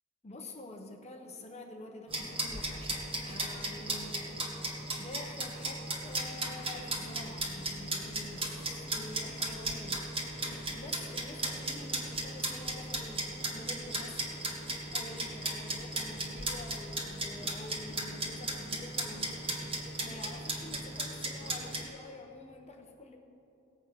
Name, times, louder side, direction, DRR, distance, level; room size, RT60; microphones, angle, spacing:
voice 1, 0.2-4.4 5.0-14.3 14.9-19.5 20.0-23.2, left 2 dB, 30° left, 3 dB, 0.9 m, -48 dB
sound 1, 2.1-21.8, right 2 dB, 25° right, 1.9 m, -36 dB
18.5 x 8.1 x 6.2 m, 3.0 s
head